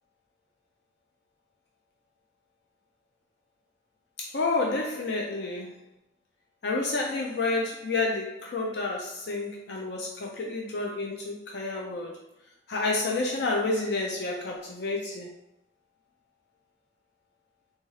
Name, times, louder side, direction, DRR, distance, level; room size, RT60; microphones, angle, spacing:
voice 1, 4.2-5.7 6.6-12.2 12.7-15.3, left 3 dB, 60° left, -1 dB, 0.5 m, -29 dB
4.1 x 2.4 x 3.1 m, 0.85 s
head